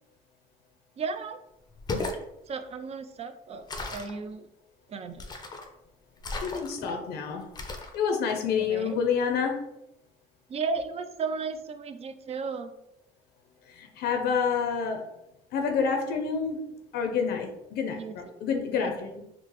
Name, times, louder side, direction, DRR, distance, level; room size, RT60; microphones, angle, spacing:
voice 1, 1.0-1.4 2.5-4.4 4.9-5.2 8.6-9.0 10.5-12.7 18.0-18.2 18.7-19.0, right 5 dB, 40° right, 9 dB, 0.4 m, -34 dB
sound 1, 1.7-2.2 3.7-4.2 5.2-5.7 6.2-6.9 7.6-8.0, left 2 dB, 25° left, 0.5 m, -35 dB
voice 2, 6.4-7.5 7.9-9.7 13.7-15.0 15.5-16.7 16.9-19.2, left 6 dB, 75° left, 4 dB, 0.5 m, -28 dB
3.8 x 2.4 x 2.9 m, 0.86 s
cardioid pair, 110°, 17 cm